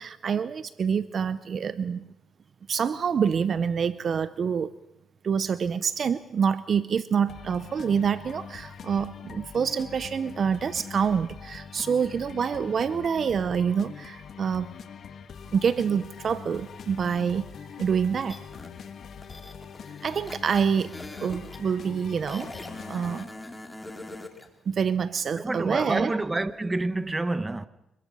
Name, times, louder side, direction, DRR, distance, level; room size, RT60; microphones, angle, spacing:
voice 1, 0.0-2.1 2.7-4.7 5.2-14.7 15.5-17.4 17.8-18.4 20.0-22.5 22.9-23.3 24.7-26.1, right 7 dB, 50° right, 0.7 m, -26 dB
sound 1, 7.3-23.2, left 7 dB, 60° left, 1.6 m, -43 dB
sound 2, 18.3-18.7 19.2-21.6 22.3-24.5, left 1 dB, 10° left, 2.7 m, -42 dB
voice 2, 25.4-27.7, right 2 dB, 20° right, 1.1 m, -28 dB
25.0 x 21.5 x 5.6 m
cardioid pair, 90°, 0 cm